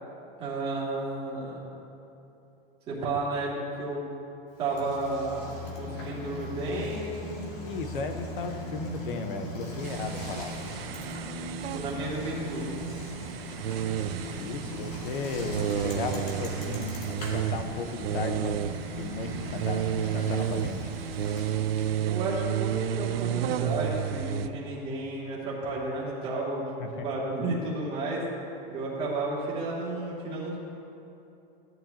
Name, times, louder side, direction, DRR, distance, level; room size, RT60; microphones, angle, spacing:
voice 1, 0.4-1.7 2.9-3.5 3.8-4.0 4.6-7.3 11.7-12.8 22.0-26.6 26.9-28.2 28.7-30.6, right 2 dB, 20° right, -7 dB, 2.3 m, -32 dB
Bicycle, 4.6-22.1, equal, 45° left, 2.1 m, -39 dB
voice 2, 7.7-10.6 14.3-18.6 18.9-20.9 26.8-27.3, left 4 dB, 60° left, 7 dB, 1.0 m, -35 dB
sound 1, 9.8-24.5, right 9 dB, 80° right, 0.6 m, -32 dB
16.0 x 11.0 x 2.8 m, 2.9 s
supercardioid pair, 180°, 29 cm